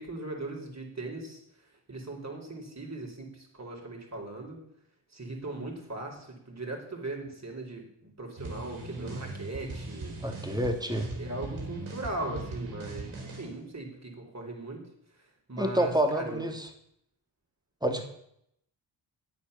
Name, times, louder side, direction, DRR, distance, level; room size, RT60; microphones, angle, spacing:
voice 1, 0.0-1.4 1.9-4.6 5.1-10.2 11.2-14.8 15.5-16.5, right 2 dB, 30° right, 1 dB, 4.4 m, -39 dB
sound 1, 8.4-13.5, right 2 dB, 70° right, 3.8 m, -39 dB
voice 2, 10.2-11.1 15.6-16.7 17.8-18.1, right 1 dB, 10° right, 4 dB, 2.6 m, -28 dB
8.9 x 8.7 x 7.0 m, 0.73 s
supercardioid pair, 45°, 50 cm